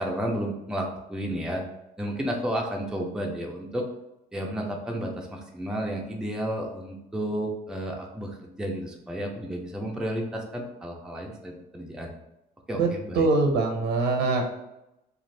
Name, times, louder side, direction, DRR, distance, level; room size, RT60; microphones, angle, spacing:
voice 1, 0.0-1.6 2.0-3.9 4.3-12.1 12.7-13.3, right 1 dB, 5° right, 0 dB, 0.5 m, -32 dB
voice 2, 12.7-14.4, right 3 dB, 85° right, 2 dB, 0.7 m, -23 dB
2.5 x 2.4 x 3.2 m, 0.89 s
cardioid pair, 110°, 17 cm